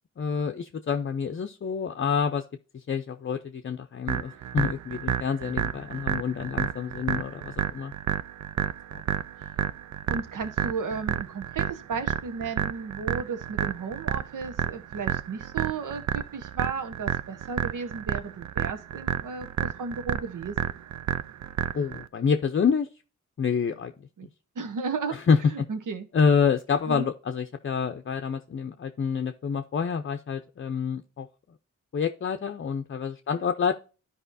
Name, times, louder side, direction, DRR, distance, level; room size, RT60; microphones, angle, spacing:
voice 1, 0.2-2.4 2.7-7.9 21.7-22.9 23.4-23.9 25.1-25.4 26.1-31.3 31.9-33.8, left 6 dB, 40° left, 6 dB, 0.6 m, -27 dB
sound 1, 4.1-22.1, right 10 dB, 65° right, 0.5 m, -30 dB
voice 2, 10.1-20.6 24.2-24.3 24.5-25.2 25.5-26.1 26.9-27.1 33.3-33.5, right 5 dB, 90° right, 8 dB, 1.2 m, -34 dB
12.5 x 4.9 x 2.6 m, 0.34 s
wide cardioid pair, 105°, 31 cm